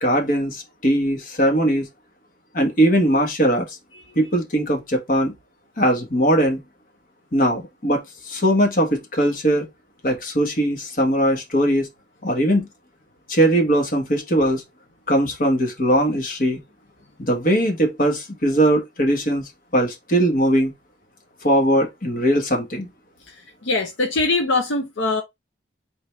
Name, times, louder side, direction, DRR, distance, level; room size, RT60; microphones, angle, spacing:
voice 1, 0.0-1.9 2.5-3.8 4.1-5.3 5.8-6.6 7.3-9.7 10.0-11.9 12.2-12.7 13.3-14.6 15.1-16.6 17.2-20.7 21.4-22.9, right 1 dB, 45° left, 1.5 m, -20 dB
voice 2, 23.6-25.2, left 3 dB, 75° left, 0.8 m, -22 dB
3.9 x 3.5 x 3.2 m
head